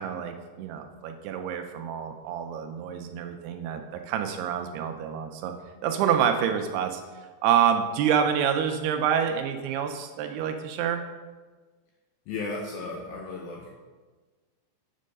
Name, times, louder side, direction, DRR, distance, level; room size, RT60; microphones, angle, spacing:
voice 1, 0.0-5.5 5.8-7.0 7.4-11.0, right 8 dB, 85° right, 5 dB, 2.4 m, -27 dB
voice 2, 12.3-13.7, left 3 dB, 80° left, 0 dB, 2.1 m, -35 dB
7.4 x 4.5 x 5.2 m, 1.3 s
omnidirectional pair, 4.8 m